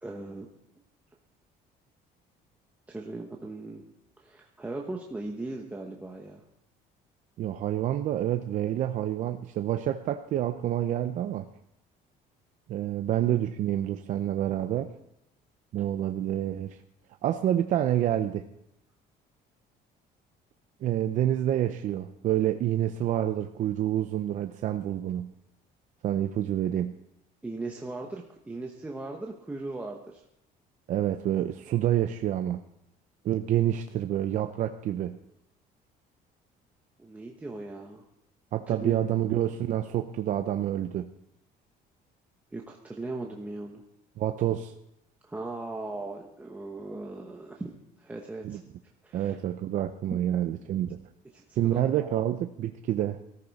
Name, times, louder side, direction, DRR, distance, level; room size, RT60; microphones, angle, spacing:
voice 1, 0.0-0.5 2.9-3.8 4.2-6.4 27.4-30.2 37.0-38.0 38.7-38.9 42.5-43.8 45.2-48.6 49.0-49.4 50.1-50.2 51.3-52.1, right 2 dB, 10° right, 0 dB, 1.0 m, -38 dB
voice 2, 7.4-11.5 12.7-14.9 15.7-16.8 17.2-18.5 20.8-25.3 26.0-27.0 30.9-32.6 33.2-35.2 38.5-41.1 44.2-44.7 48.4-48.6 49.1-51.0 51.6-53.2, right 11 dB, 50° right, 7 dB, 0.6 m, -28 dB
18.5 x 14.0 x 4.1 m, 0.80 s
cardioid pair, 160°, 17 cm